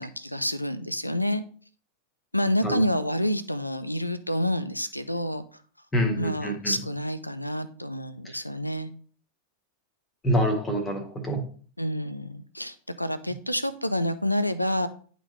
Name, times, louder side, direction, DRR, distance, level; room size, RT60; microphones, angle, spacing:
voice 1, 0.0-1.4 2.3-5.4 6.2-8.9 11.8-14.9, left 1 dB, 90° left, 13 dB, 0.5 m, -28 dB
voice 2, 5.9-6.8 10.2-11.4, equal, 15° left, 4 dB, 1.8 m, -26 dB
10.5 x 3.9 x 3.2 m, 0.43 s
figure-of-eight pair, 90°, 0 cm